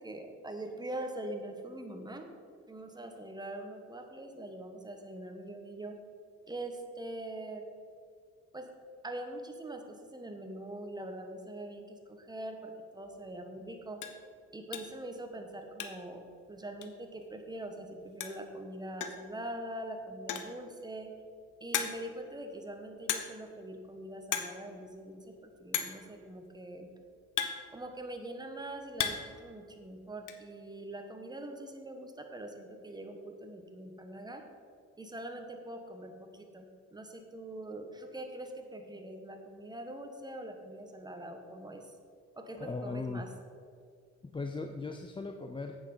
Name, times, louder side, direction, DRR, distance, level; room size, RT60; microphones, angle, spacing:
voice 1, 0.0-2.3 2.7-6.0 6.5-7.6 8.5-8.7 9.0-14.0 14.5-21.1 21.6-26.9 27.7-34.4 35.0-41.9 42.4-43.3, right 1 dB, 15° right, 4 dB, 1.3 m, -43 dB
sound 1, 13.0-13.2 13.6-13.7 14.0-14.2 14.7-15.0 15.3-16.2 16.4-16.5 16.8-16.9 17.9-18.0 18.2-18.5 19.0-19.3 20.1-20.6 21.2-21.3 21.7-22.2 23.1-23.5 23.8-24.0 24.2-24.6 24.8-24.9 25.7-26.1 26.9-28.2 28.6-29.4 29.6-30.4, left 9 dB, 85° left, 0.9 m, -36 dB
voice 2, 42.6-43.3 44.2-45.8, left 3 dB, 15° left, 5 dB, 0.5 m, -38 dB
8.6 x 7.1 x 5.6 m, 2.2 s
cardioid pair, 90°, 30 cm